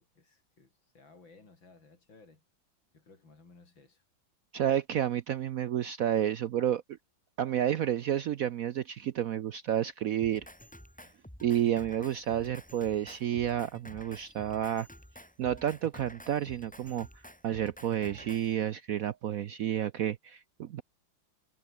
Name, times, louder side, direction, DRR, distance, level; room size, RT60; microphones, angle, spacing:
voice 1, 0.0-2.4 2.9-4.0, left 3 dB, 80° left, 5.2 m, -58 dB
voice 2, 4.5-6.8 7.4-10.5 11.4-14.9 15.4-17.1 17.4-20.8, right 10 dB, 65° right, 0.8 m, -30 dB
Drum kit, 10.2-18.5, equal, 5° left, 3.2 m, -51 dB
omnidirectional pair, 2.1 m